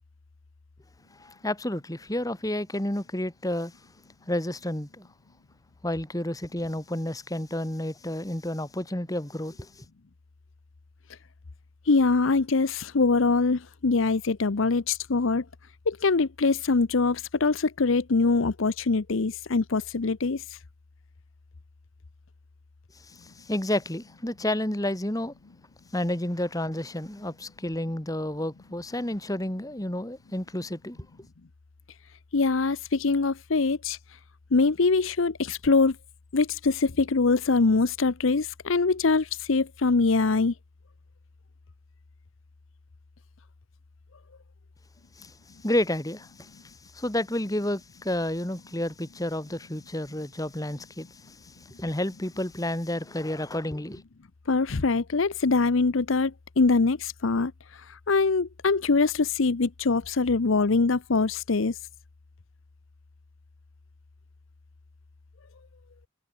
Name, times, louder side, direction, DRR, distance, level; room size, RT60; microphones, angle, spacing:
voice 1, 1.1-3.7 4.3-5.1 5.8-9.9 23.1-25.3 25.9-31.0 45.2-45.3 45.6-54.0, left 1 dB, 15° left, 1.9 m, -30 dB
voice 2, 11.9-15.4 15.9-20.4 32.3-34.0 34.5-35.9 36.3-40.5 54.5-57.5 58.1-61.7, left 4 dB, 75° left, 0.8 m, -23 dB
head